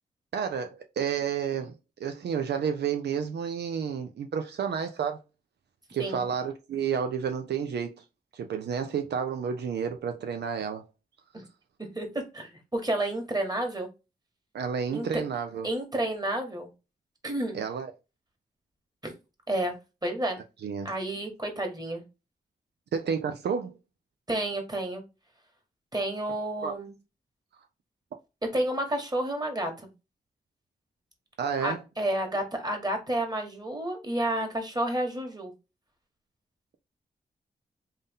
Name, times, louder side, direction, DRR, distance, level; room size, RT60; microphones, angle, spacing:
voice 1, 0.3-1.7 2.0-5.2 5.9-8.0 8.3-10.9 14.5-15.7 17.5-17.9 20.6-20.9 22.9-23.8 26.6-26.7 31.4-31.8, right 7 dB, 80° right, 0.5 m, -30 dB
voice 2, 12.3-13.9 14.9-15.2 15.6-16.7 17.2-17.6 19.0-19.1 19.5-19.7 20.0-20.4 20.9-22.0 24.3-25.0 25.9-26.9 28.5-29.9 31.6-35.5, right 1 dB, 25° right, 1.7 m, -30 dB
3.5 x 2.7 x 3.6 m
cardioid pair, 45°, 17 cm